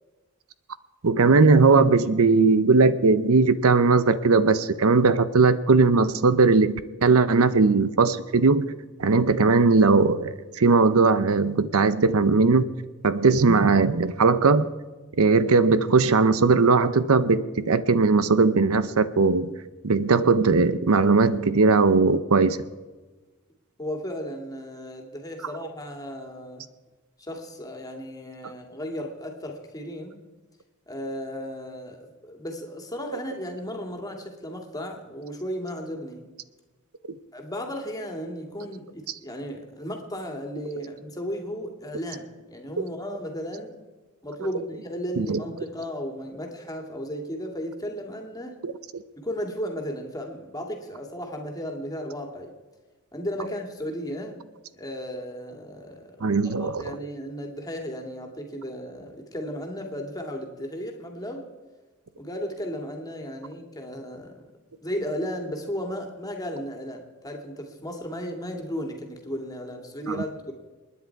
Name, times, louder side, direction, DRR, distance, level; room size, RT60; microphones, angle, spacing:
voice 1, 1.0-6.7 7.0-8.7 9.0-12.7 13.0-14.7 15.2-19.5 19.8-22.6 42.8-42.9 45.2-45.4 48.6-49.0 56.2-56.7 70.1-70.2, right 4 dB, 70° right, 14 dB, 0.7 m, -19 dB
voice 2, 23.8-26.6 27.2-30.2 30.9-36.2 37.3-43.8 44.2-48.6 49.2-52.5 53.1-54.4 54.7-56.1 56.6-61.5 62.2-64.5 64.8-70.5, equal, 15° left, 3 dB, 2.3 m, -35 dB
28.5 x 10.0 x 4.7 m, 1.3 s
head